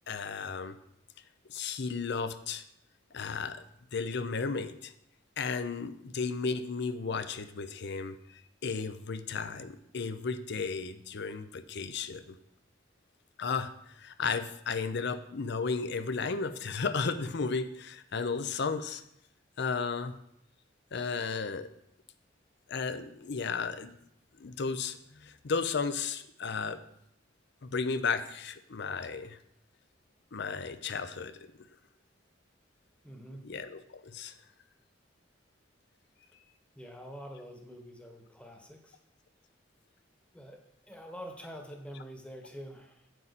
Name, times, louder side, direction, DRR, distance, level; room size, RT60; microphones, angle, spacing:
voice 1, 0.1-0.8 1.5-2.6 3.1-3.6 3.9-4.9 5.4-12.4 13.4-19.0 19.6-20.2 20.9-21.7 22.7-23.9 24.4-26.8 27.6-29.4 30.3-31.5 33.4-34.3, left 5 dB, 60° left, 11 dB, 0.6 m, -34 dB
voice 2, 33.0-33.5 36.7-39.0 40.3-40.6 40.9-43.1, equal, 5° left, 3 dB, 1.2 m, -46 dB
9.2 x 7.4 x 4.1 m, 0.74 s
head